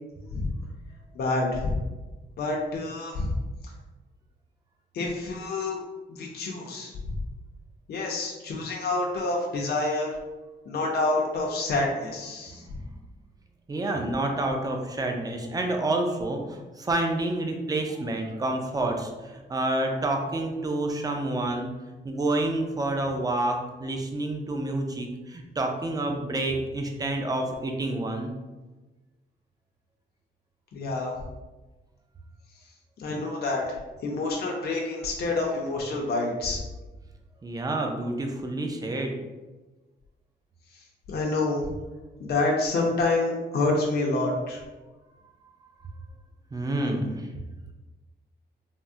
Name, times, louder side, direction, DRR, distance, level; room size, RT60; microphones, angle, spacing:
voice 1, 1.1-1.8 2.4-3.3 4.9-5.8 6.2-7.2 7.9-10.2 10.7-12.6 30.7-31.1 33.0-33.6 34.0-36.6 41.1-41.7 42.2-44.6, left 2 dB, 60° left, -1 dB, 0.5 m, -27 dB
voice 2, 13.7-21.7 22.0-28.3 37.4-39.2 46.5-47.3, right 2 dB, 20° right, 3 dB, 0.4 m, -28 dB
3.4 x 2.0 x 2.6 m, 1.2 s
wide cardioid pair, 120°, 19 cm